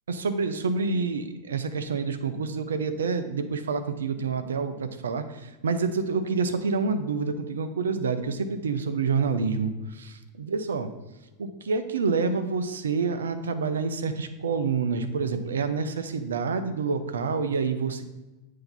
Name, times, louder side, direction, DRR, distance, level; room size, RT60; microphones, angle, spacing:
voice 1, 0.1-10.9 11.4-18.0, right 4 dB, 65° right, 10 dB, 0.5 m, -28 dB
7.7 x 2.8 x 5.4 m, 1.1 s
figure-of-eight pair, 90°, 0 cm